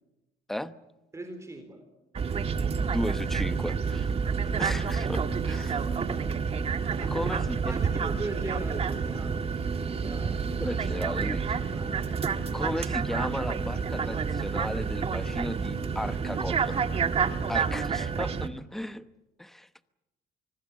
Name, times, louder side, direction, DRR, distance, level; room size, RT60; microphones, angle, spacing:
voice 1, 1.1-1.8 6.0-6.4 7.0-7.4 7.6-9.6 10.0-10.4 11.7-12.1, right 2 dB, 15° right, 6 dB, 3.9 m, -39 dB
sound 1, 2.2-18.5, right 6 dB, 35° right, 1.7 m, -29 dB
voice 2, 2.8-4.1 4.6-5.8 7.1-7.8 10.6-11.6 12.5-17.0 17.5-19.1 19.4-19.9, left 1 dB, ahead, 12 dB, 1.0 m, -35 dB
24.5 x 24.0 x 7.3 m, 0.96 s
cardioid pair, 110°, 17 cm